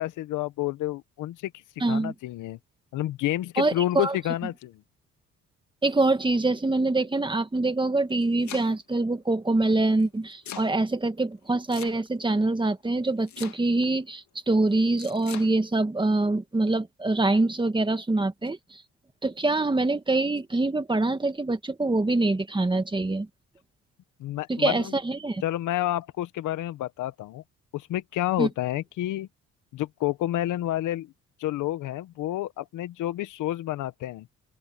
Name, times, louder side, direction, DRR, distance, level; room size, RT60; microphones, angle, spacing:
voice 1, 0.0-1.5 1.9-2.6 2.9-4.8 24.2-24.9 25.4-27.4 27.7-29.3 29.7-31.1 31.4-34.3, left 14 dB, 85° left, 1.1 m, -29 dB
voice 2, 1.8-2.1 3.6-4.1 5.8-18.8 19.2-23.3 24.5-25.4 28.4-28.5, right 2 dB, 15° right, 1.8 m, -25 dB
Domestic sounds home sounds, 7.9-9.0 10.0-10.7 11.7-12.3 13.3-13.9 15.0-15.5, left 10 dB, 65° left, 2.3 m, -41 dB
open air
cardioid pair, 90°, 30 cm